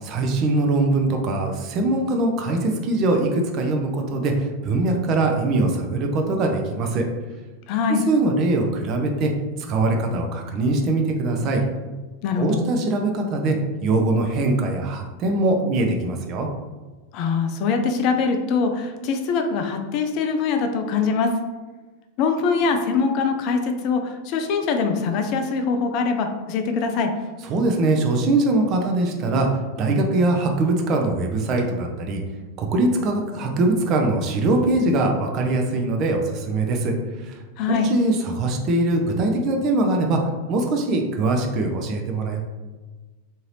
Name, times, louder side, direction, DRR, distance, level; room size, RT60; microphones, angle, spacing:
voice 1, 0.0-7.0 7.9-9.3 9.6-11.6 12.4-13.6 13.8-16.5 27.5-29.5 29.8-32.2 32.6-37.4 37.7-40.2 40.5-42.4, right 2 dB, 35° right, 2 dB, 0.6 m, -22 dB
voice 2, 7.7-8.0 12.2-12.6 17.1-21.3 22.2-27.1 37.6-37.9, left 5 dB, 40° left, 5 dB, 0.4 m, -23 dB
3.7 x 2.7 x 3.1 m, 1.2 s
figure-of-eight pair, 90°, 0 cm